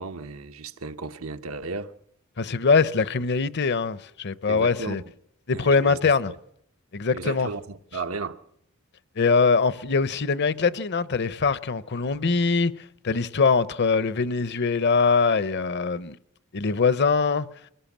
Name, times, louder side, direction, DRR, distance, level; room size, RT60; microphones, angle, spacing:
voice 1, 0.0-1.9 4.5-5.0 5.5-6.0 6.3-6.4 7.1-8.4, right 3 dB, 90° right, 1.1 m, -34 dB
voice 2, 2.4-5.0 5.5-6.3 6.9-7.5 9.2-12.7 13.0-16.2 16.5-17.5, left 4 dB, 55° left, 0.8 m, -22 dB
23.0 x 17.0 x 7.3 m
head